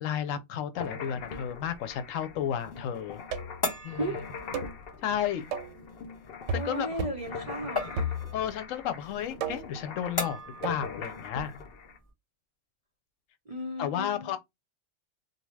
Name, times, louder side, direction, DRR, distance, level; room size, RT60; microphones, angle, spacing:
voice 1, 0.0-3.2 3.8-4.1 5.0-5.5 6.5-7.1 8.3-11.6 13.8-14.4, left 9 dB, 85° left, 1.0 m, -32 dB
sound 1, 0.7-12.0, left 5 dB, 60° left, 0.7 m, -43 dB
sound 2, 1.3-12.1, left 2 dB, 20° left, 0.9 m, -40 dB
sound 3, 3.3-3.7 4.5-4.8 5.5-5.8 6.5-6.7 7.0-7.3 8.0-8.6 9.4-9.8 10.6-10.9, right 2 dB, 90° right, 1.0 m, -34 dB
voice 2, 4.0-4.3 6.5-8.2 13.5-14.4, right 1 dB, 40° right, 0.5 m, -35 dB
2.7 x 2.2 x 3.1 m
omnidirectional pair, 1.3 m